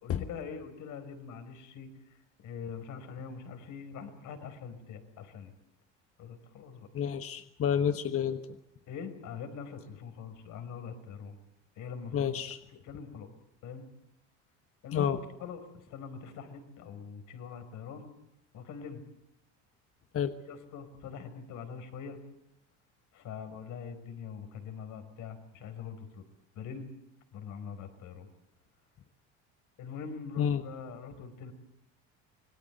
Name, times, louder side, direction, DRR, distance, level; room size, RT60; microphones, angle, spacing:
voice 1, 0.0-5.5 6.2-6.9 8.9-11.3 11.8-12.4 12.8-13.3 13.6-13.9 14.8-18.1 18.5-19.0 20.5-22.2 23.1-26.2 26.5-26.9 27.3-28.3 29.8-31.5, left 6 dB, 60° left, 9 dB, 4.6 m, -43 dB
voice 2, 6.9-8.5 12.1-12.6 14.9-15.2 20.1-20.3 30.4-30.6, left 8 dB, 40° left, 9 dB, 1.3 m, -29 dB
26.5 x 19.0 x 8.0 m, 0.80 s
supercardioid pair, 90°, 34 cm